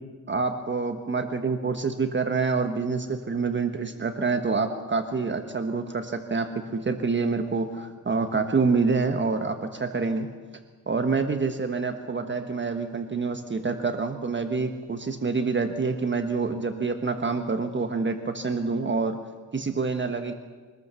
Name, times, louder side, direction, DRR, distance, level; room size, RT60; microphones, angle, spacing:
voice 1, 0.3-10.3 10.9-19.2 19.5-20.3, right 4 dB, 30° right, 7 dB, 1.3 m, -27 dB
24.5 x 20.0 x 6.9 m, 1.4 s
cardioid pair, 115°, 38 cm